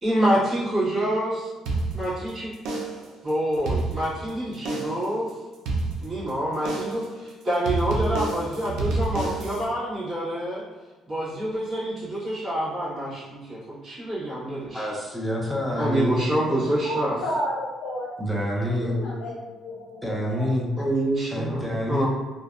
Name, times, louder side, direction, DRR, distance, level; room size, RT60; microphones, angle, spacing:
voice 1, 0.0-1.5 1.9-2.5 3.2-5.3 6.0-10.6 11.1-14.9 15.7-17.2 20.8-22.1, right 1 dB, 35° right, -10 dB, 1.3 m, -27 dB
sound 1, 1.7-2.3 2.7-3.2 3.5-4.3 4.7-5.1 5.7-6.3 6.7-7.1 7.7-9.7, right 3 dB, 80° right, 0.4 m, -28 dB
voice 2, 14.7-16.6 18.2-19.1 20.0-20.7 21.3-22.1, left 1 dB, 5° left, -2 dB, 0.5 m, -27 dB
voice 3, 16.8-18.1 18.6-20.5, equal, 90° left, -4 dB, 0.5 m, -32 dB
2.6 x 2.0 x 2.4 m, 1.3 s
cardioid pair, 130°, 0 cm